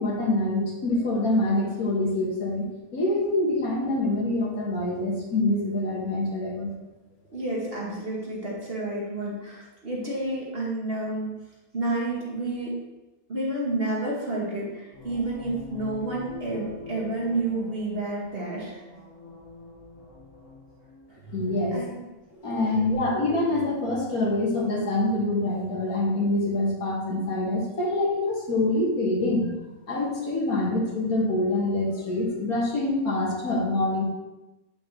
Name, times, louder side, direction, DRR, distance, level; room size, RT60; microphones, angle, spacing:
voice 1, 0.0-2.7 2.9-6.7 21.2-21.8 22.3-29.5 29.9-34.0, left 2 dB, 75° left, -3 dB, 2.1 m, -25 dB
voice 2, 7.3-11.4 11.7-12.8 13.3-18.8 21.7-22.0 22.6-22.9, right 2 dB, 40° right, -5 dB, 1.9 m, -30 dB
sound 1, 14.9-21.1, left 3 dB, 55° left, 1.6 m, -44 dB
8.5 x 5.4 x 3.0 m, 1.1 s
omnidirectional pair, 1.6 m